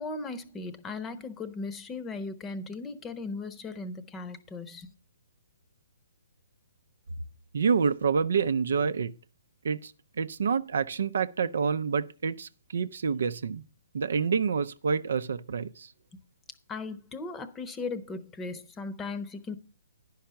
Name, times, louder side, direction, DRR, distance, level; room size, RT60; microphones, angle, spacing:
voice 1, 0.0-4.9 16.7-19.6, left 3 dB, 15° left, 0.9 m, -37 dB
voice 2, 7.5-9.1 9.6-9.9 10.2-13.6 13.9-15.9, right 6 dB, 70° right, 0.6 m, -27 dB
10.5 x 5.6 x 5.8 m
hypercardioid pair, 140°, 0 cm